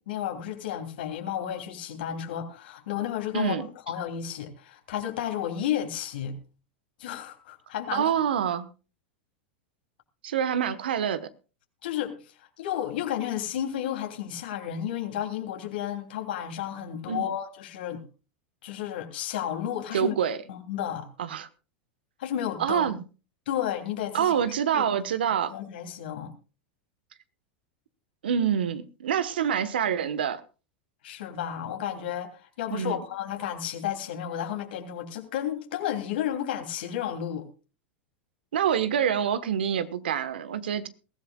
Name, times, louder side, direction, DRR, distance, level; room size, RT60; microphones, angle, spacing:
voice 1, 0.1-6.4 7.0-8.0 11.8-12.2 12.6-18.0 18.6-20.1 20.5-21.1 22.2-22.9 23.5-24.4 24.7-24.9 25.5-26.3 31.0-37.5, left 10 dB, 75° left, 3.1 m, -32 dB
voice 2, 3.3-3.7 7.9-8.7 10.2-11.3 17.1-17.3 19.9-20.4 21.2-21.5 22.6-23.0 24.1-25.5 28.2-30.4 32.7-33.0 38.5-40.9, right 8 dB, 80° right, 1.3 m, -26 dB
21.5 x 15.0 x 2.4 m
hypercardioid pair, 100°, 5 cm